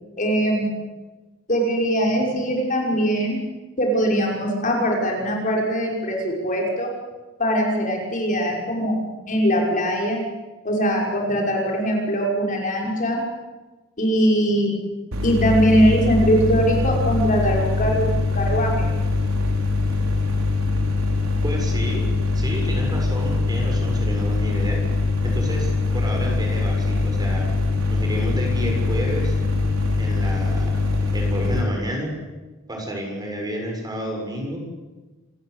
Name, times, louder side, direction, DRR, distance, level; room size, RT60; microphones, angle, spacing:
voice 1, 0.2-0.7 1.5-3.4 3.8-6.9 7.4-9.0 9.3-10.2 10.6-13.2 14.0-14.8 15.2-18.9, equal, 40° left, -1 dB, 5.8 m, -21 dB
sound 1, 15.1-31.6, left 3 dB, 80° right, 4.2 m, -22 dB
voice 2, 21.4-22.1 22.3-24.8 25.2-27.4 27.9-29.3 30.0-30.7 31.1-32.1 32.7-34.6, equal, 20° right, 1 dB, 6.8 m, -30 dB
27.5 x 19.5 x 8.3 m, 1.2 s
head